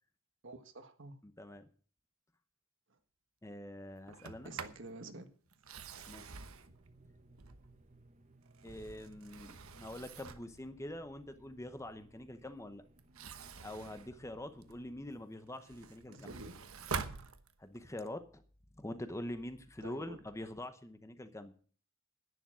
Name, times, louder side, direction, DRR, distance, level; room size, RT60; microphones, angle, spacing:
voice 1, 0.4-1.1 4.4-5.3 16.1-16.5 19.8-20.2, right 2 dB, 60° right, 1.5 m, -49 dB
voice 2, 1.2-1.7 3.4-4.5 6.1-6.4 7.0-7.1 8.6-12.8 13.6-16.4 17.6-18.4 18.8-21.5, left 1 dB, 15° left, 0.8 m, -45 dB
Sliding door, 4.1-4.9 5.5-7.9 8.4-10.6 13.0-14.9 15.4-17.9, right 5 dB, 80° right, 1.1 m, -46 dB
sound 1, 6.4-15.2, right 2 dB, 35° right, 1.0 m, -63 dB
11.0 x 10.0 x 6.2 m
head